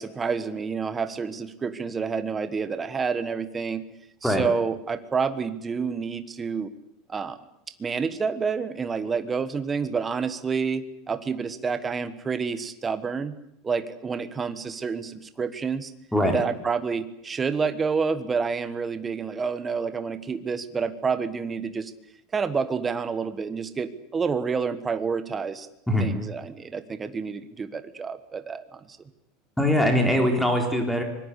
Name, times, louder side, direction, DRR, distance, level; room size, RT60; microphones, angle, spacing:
voice 1, 0.0-3.8 4.2-6.7 7.1-7.4 7.8-13.3 13.6-15.9 16.3-21.9 22.3-25.7 26.0-28.8, right 5 dB, 15° right, 11 dB, 1.3 m, -28 dB
voice 2, 29.6-31.0, left 1 dB, ahead, 3 dB, 3.8 m, -22 dB
25.0 x 21.5 x 8.4 m, 0.76 s
supercardioid pair, 170°, 0 cm